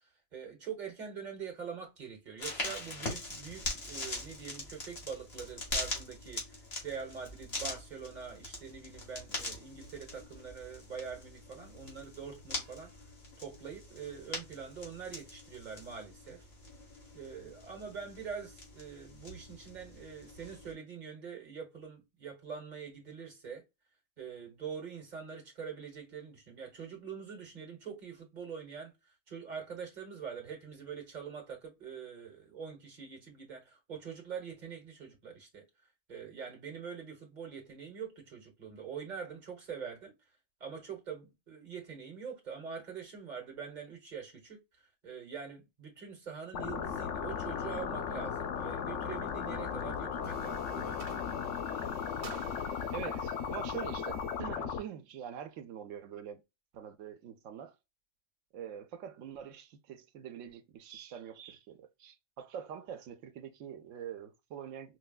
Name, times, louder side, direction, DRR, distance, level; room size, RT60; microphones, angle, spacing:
voice 1, 0.3-12.9 13.4-16.4 17.1-23.6 24.2-35.6 36.1-40.1 40.6-51.0, right 6 dB, 40° right, 1.3 m, -44 dB
sound 1, 2.4-20.7, left 2 dB, 55° left, 1.8 m, -42 dB
sound 2, 46.5-54.8, left 7 dB, 85° left, 1.0 m, -36 dB
sound 3, 50.1-54.5, right 6 dB, 55° right, 0.8 m, -51 dB
voice 2, 52.9-56.4 56.7-57.7 58.5-65.0, right 9 dB, 90° right, 1.0 m, -44 dB
4.6 x 2.2 x 2.3 m
omnidirectional pair, 1.3 m